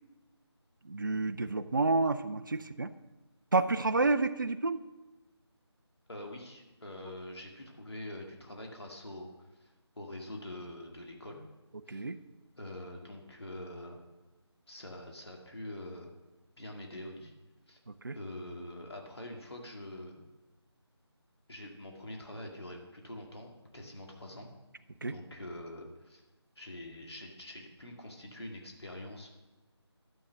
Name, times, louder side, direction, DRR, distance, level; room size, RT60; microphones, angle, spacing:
voice 1, 0.9-2.9 3.5-4.8 11.9-12.2 18.0-18.2 25.0-25.1, right 3 dB, 45° right, 9 dB, 0.5 m, -29 dB
voice 2, 6.1-11.4 11.9-12.0 12.6-14.0 14.7-16.1 16.6-17.3 17.7-17.8 18.2-20.2 21.5-24.5 25.0-26.2 26.6-29.3, left 1 dB, 65° left, 0 dB, 2.2 m, -45 dB
12.5 x 7.0 x 6.3 m, 1.1 s
figure-of-eight pair, 165°, 15 cm